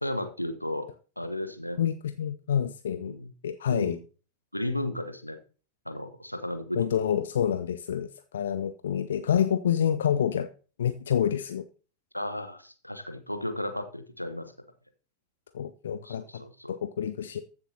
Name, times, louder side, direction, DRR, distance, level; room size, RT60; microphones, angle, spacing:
voice 1, 0.0-0.9 1.2-1.8 3.0-3.3 3.7-4.0 4.5-5.4 5.8-6.9 12.1-14.5 15.9-16.7, left 1 dB, 90° left, 9 dB, 1.0 m, -34 dB
voice 2, 1.8-3.1 3.4-4.0 6.8-10.5 10.8-11.6 15.5-16.4 16.7-17.4, left 9 dB, 65° left, 11 dB, 0.5 m, -28 dB
14.5 x 7.1 x 2.8 m, 0.37 s
figure-of-eight pair, 90°, 0 cm